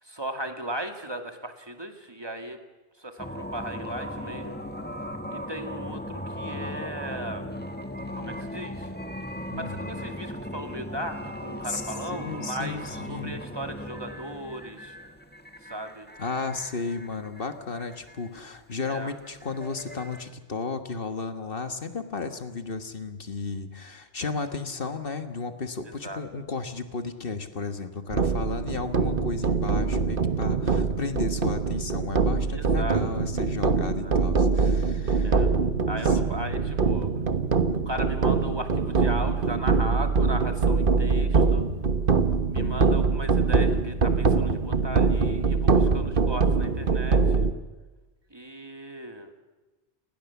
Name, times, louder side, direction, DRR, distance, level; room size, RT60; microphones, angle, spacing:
voice 1, 0.0-2.6 3.0-4.6 5.3-7.5 8.2-8.9 9.6-15.0 15.6-16.1 18.8-19.1 25.8-26.2 32.5-33.0 33.9-34.1 35.2-35.5 35.9-37.2 37.9-41.7 42.5-47.5 48.3-49.3, right 1 dB, 20° right, 5 dB, 2.3 m, -37 dB
sound 1, 3.2-20.2, equal, 10° left, 1.6 m, -38 dB
voice 2, 12.1-13.4 16.2-35.5 36.0-36.2 42.5-42.9, left 4 dB, 50° left, 8 dB, 1.6 m, -34 dB
sound 2, 28.1-47.5, right 4 dB, 50° right, 1.4 m, -23 dB
28.5 x 20.0 x 7.1 m, 1.2 s
omnidirectional pair, 1.2 m